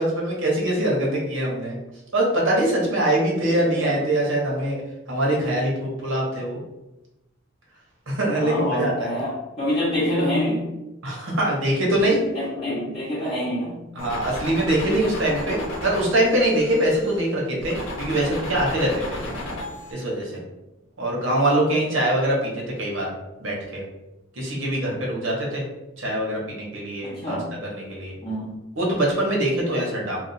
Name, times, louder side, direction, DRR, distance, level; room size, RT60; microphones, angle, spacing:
voice 1, 0.0-1.8 2.1-4.8 5.1-6.6 8.1-9.1 11.0-12.2 13.9-19.2 19.9-20.3 21.0-23.1 23.4-23.8 24.4-25.6 26.0-27.4 27.6-28.1 28.8-30.2, right 1 dB, 75° right, -2 dB, 1.0 m, -23 dB
voice 2, 3.5-4.0 8.4-10.6 12.3-13.8 19.3-19.6 27.1-27.5 28.2-28.6, left 1 dB, 30° left, -10 dB, 0.9 m, -27 dB
sound 1, 14.0-17.2 17.6-19.9, left 1 dB, 85° left, 0.8 m, -34 dB
2.4 x 2.3 x 4.0 m, 0.98 s
head